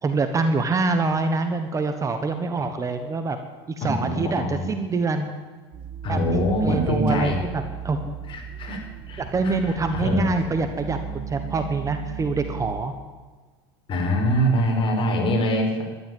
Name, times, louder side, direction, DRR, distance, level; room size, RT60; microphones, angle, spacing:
voice 1, 0.0-3.4 3.7-5.3 6.1-8.1 9.2-12.9, right 3 dB, 25° right, 8 dB, 1.3 m, -25 dB
voice 2, 3.8-4.7 6.0-7.4 8.3-8.8 9.1-10.2 13.9-15.8, equal, 40° left, 1 dB, 4.7 m, -24 dB
sound 1, 5.7-12.8, right 9 dB, 40° right, 1.8 m, -36 dB
13.0 x 10.5 x 9.4 m, 1.4 s
supercardioid pair, 110°, 14 cm